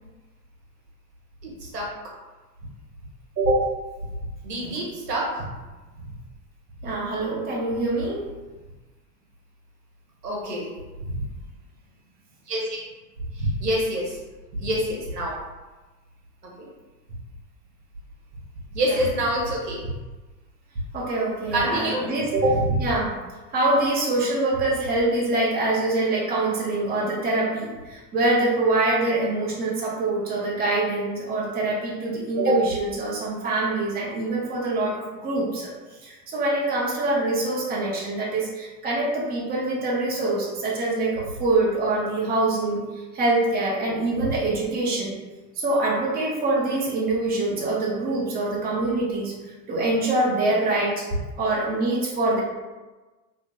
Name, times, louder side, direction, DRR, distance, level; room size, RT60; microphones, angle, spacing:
voice 1, 1.4-1.8 3.4-3.6 4.4-5.5 10.2-10.7 11.0-11.2 12.5-12.6 13.3-14.2 14.6-15.3 16.4-16.7 18.7-19.9 21.5-22.8 32.4-32.5, right 1 dB, 80° right, -4 dB, 1.1 m, -25 dB
voice 2, 6.8-8.3 18.8-19.0 20.9-22.3 22.8-23.1 23.5-35.7 36.0-45.1 45.6-49.3 49.7-51.1 51.4-52.4, right 2 dB, 20° right, -4 dB, 0.8 m, -25 dB
3.0 x 2.5 x 2.8 m, 1.2 s
figure-of-eight pair, 85°, 48 cm